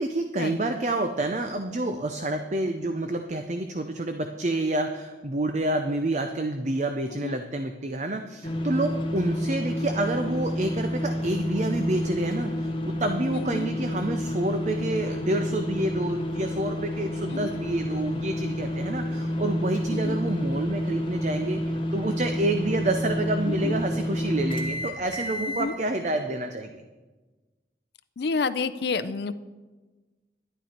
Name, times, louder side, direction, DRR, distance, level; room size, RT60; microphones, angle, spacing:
voice 1, 0.0-26.8, right 2 dB, 40° right, 6 dB, 0.6 m, -28 dB
sound 1, 8.4-25.7, equal, 30° left, 1.1 m, -29 dB
voice 2, 13.3-13.7 17.3-17.5 19.9-20.2 23.4-23.8 25.5-25.7 28.2-29.3, left 4 dB, 70° left, 12 dB, 0.5 m, -30 dB
12.0 x 11.0 x 4.4 m, 1.2 s
head